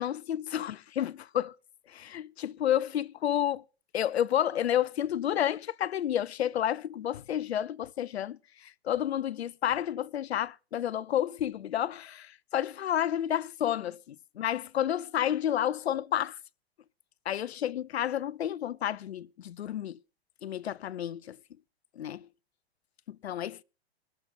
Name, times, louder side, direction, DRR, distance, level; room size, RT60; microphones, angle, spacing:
voice 1, 0.0-1.5 1.9-3.6 3.9-16.4 17.2-20.0 20.4-21.4 22.0-22.3 23.1-23.6, left 11 dB, 80° left, 0.6 m, -30 dB
20.5 x 7.4 x 4.1 m
hypercardioid pair, 110°, 31 cm